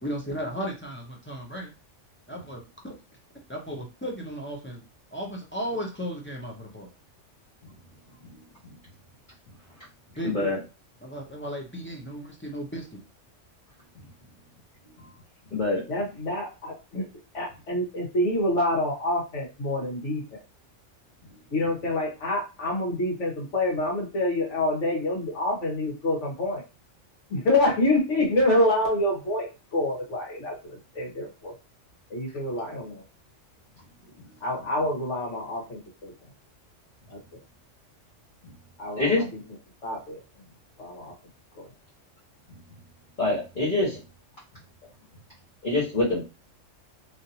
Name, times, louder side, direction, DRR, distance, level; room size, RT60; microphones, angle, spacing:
voice 1, 0.0-1.7 2.3-2.6 3.5-4.8 5.1-6.9 10.2-10.5 11.0-13.0, equal, 15° left, -1 dB, 0.5 m, -35 dB
voice 2, 10.2-10.6 15.5-15.8 39.0-39.2 43.2-44.0 45.6-46.2, left 2 dB, 40° left, -8 dB, 1.2 m, -24 dB
voice 3, 15.9-17.0 17.3-20.4 21.5-26.6 27.3-31.5 32.1-33.0 34.4-36.1 37.1-37.2 38.8-39.4 39.8-40.2 40.8-41.1 41.5-41.7, left 1 dB, 75° left, -2 dB, 1.6 m, -27 dB
3.1 x 2.6 x 2.7 m, 0.30 s
omnidirectional pair, 1.3 m